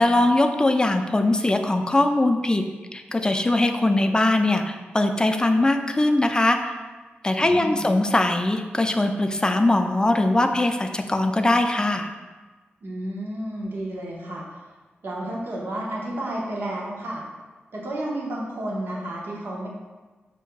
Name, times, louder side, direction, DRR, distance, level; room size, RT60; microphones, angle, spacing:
voice 1, 0.0-2.7 2.9-6.8 7.2-12.1, left 2 dB, 20° left, 6 dB, 0.3 m, -21 dB
voice 2, 7.4-7.9 12.8-14.4 15.0-17.2 17.7-19.7, right 1 dB, 65° right, -4 dB, 1.0 m, -31 dB
6.2 x 2.7 x 2.2 m, 1.3 s
cardioid pair, 70°, 4 cm